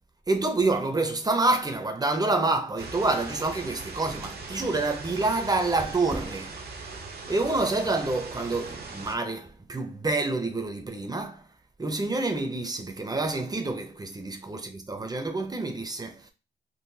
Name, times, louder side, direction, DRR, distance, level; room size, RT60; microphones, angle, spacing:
voice 1, 0.3-6.6 7.3-11.4 11.8-16.3, right 2 dB, 20° right, 0.7 m, -27 dB
sound 1, 2.8-9.2, right 4 dB, 55° right, 0.8 m, -40 dB
3.8 x 2.2 x 2.7 m
cardioid pair, 70°, 20 cm